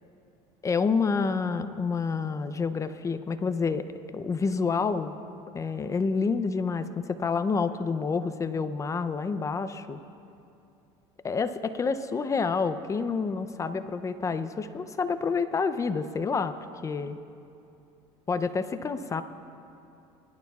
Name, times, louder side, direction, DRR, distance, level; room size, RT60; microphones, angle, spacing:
voice 1, 0.6-5.1 5.5-10.0 11.2-16.5 16.8-17.1 18.3-19.2, left 5 dB, 25° left, 11 dB, 0.5 m, -28 dB
23.0 x 11.5 x 2.4 m, 2.7 s
supercardioid pair, 105°, 12 cm